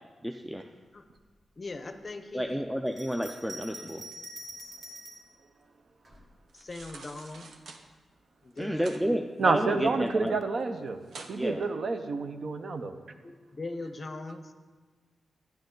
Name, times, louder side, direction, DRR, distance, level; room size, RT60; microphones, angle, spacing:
voice 1, 0.2-0.7 2.3-4.0 8.6-10.4 11.4-11.6, equal, 5° right, 4 dB, 0.4 m, -31 dB
voice 2, 1.6-2.6 6.5-7.5 8.4-9.2 13.2-14.5, left 2 dB, 30° left, 8 dB, 0.7 m, -40 dB
Bell, 2.9-5.3 6.0-7.0, right 1 dB, 30° right, 1.5 m, -45 dB
sound 1, 6.5-7.8 8.5-9.0 9.4-10.3 10.6-10.7 11.0-11.4 11.9-12.0, right 4 dB, 80° right, 1.0 m, -47 dB
voice 3, 9.4-11.0 11.3-12.9, right 4 dB, 50° right, 8 dB, 0.7 m, -28 dB
12.0 x 10.5 x 3.9 m, 1.4 s
wide cardioid pair, 145°, 0 cm